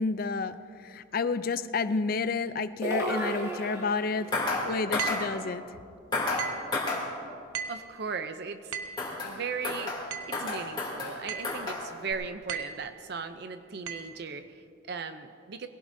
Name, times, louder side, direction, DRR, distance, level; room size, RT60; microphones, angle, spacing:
voice 1, 0.0-4.4 4.6-5.6, left 4 dB, 45° left, 13 dB, 0.4 m, -30 dB
sound 1, 2.8-4.4, right 1 dB, 15° right, 2.1 m, -33 dB
sound 2, 4.3-4.6 4.9-5.2 6.1-6.5 6.7-7.0 9.0-9.4 9.6-10.1 10.3-11.2 11.4-11.9 12.1-12.2, left 2 dB, 20° left, 2.7 m, -31 dB
sound 3, 5.0-5.4 6.4-6.7 7.5-7.9 8.7-9.1 10.1-10.4 11.3-11.6 12.5-12.9 13.9-14.1, right 7 dB, 80° right, 1.1 m, -36 dB
voice 2, 7.7-8.8 9.2-15.7, right 5 dB, 55° right, 9 dB, 0.5 m, -37 dB
22.0 x 17.0 x 2.7 m, 2.4 s
head